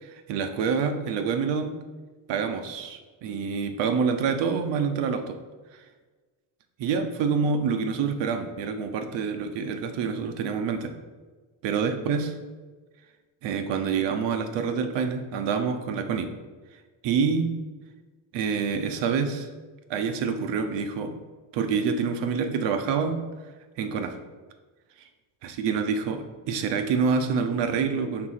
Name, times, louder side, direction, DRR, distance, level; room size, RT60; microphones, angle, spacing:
voice 1, 0.0-1.7 2.3-5.4 6.8-10.9 11.6-12.3 13.4-16.3 17.0-17.5 18.3-19.5 19.9-21.1 21.5-23.2 23.8-24.1 25.4-28.3, right 5 dB, 85° right, 7 dB, 0.8 m, -27 dB
4.7 x 3.8 x 5.6 m, 1.3 s
cardioid pair, 175°, 42 cm